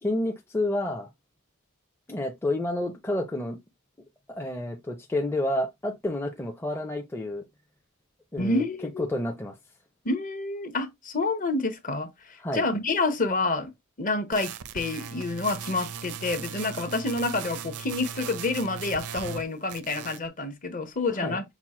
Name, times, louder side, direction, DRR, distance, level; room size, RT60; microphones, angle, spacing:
voice 1, 0.0-1.1 2.1-3.6 4.3-7.4 8.3-9.5 12.4-12.6 21.2-21.4, left 1 dB, 10° left, 0.5 m, -29 dB
voice 2, 8.4-9.1 10.0-13.7 14.0-21.4, left 3 dB, 35° left, 0.8 m, -28 dB
sound 1, 14.3-19.4 19.7-20.3, right 7 dB, 80° right, 0.5 m, -38 dB
6.0 x 2.1 x 4.2 m
head